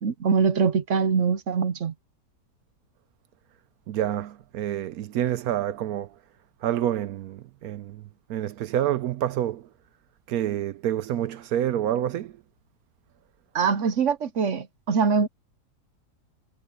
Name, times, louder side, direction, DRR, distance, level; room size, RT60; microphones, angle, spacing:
voice 1, 0.0-1.9 13.5-15.3, right 5 dB, 55° right, 1.0 m, -23 dB
voice 2, 3.9-6.1 6.6-8.0 8.3-9.7 10.3-12.4, right 11 dB, 70° right, 1.0 m, -28 dB
omnidirectional pair, 1.8 m